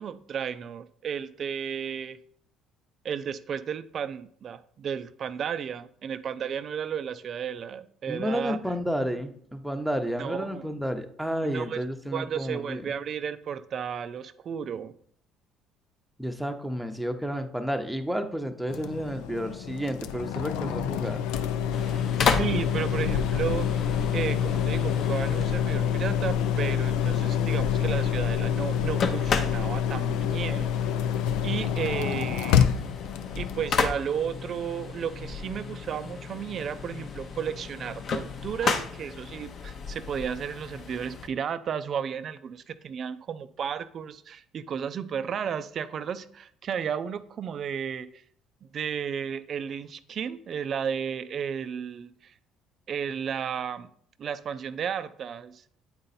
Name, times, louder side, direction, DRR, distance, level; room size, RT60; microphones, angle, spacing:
voice 1, 0.0-2.2 3.0-8.6 10.2-10.7 11.4-11.8 12.1-15.0 21.9-23.8 24.1-30.7 31.4-32.7 33.3-48.2 48.7-52.3 52.9-53.9 54.2-55.6, right 8 dB, 50° right, 12 dB, 0.4 m, -33 dB
voice 2, 8.1-12.9 16.2-21.3, equal, ahead, 6 dB, 0.8 m, -31 dB
sound 1, 18.7-33.9, left 8 dB, 85° left, 0.4 m, -27 dB
sound 2, 21.7-41.3, left 5 dB, 55° left, 0.8 m, -34 dB
8.7 x 3.9 x 4.1 m, 0.63 s
supercardioid pair, 90°, 0 cm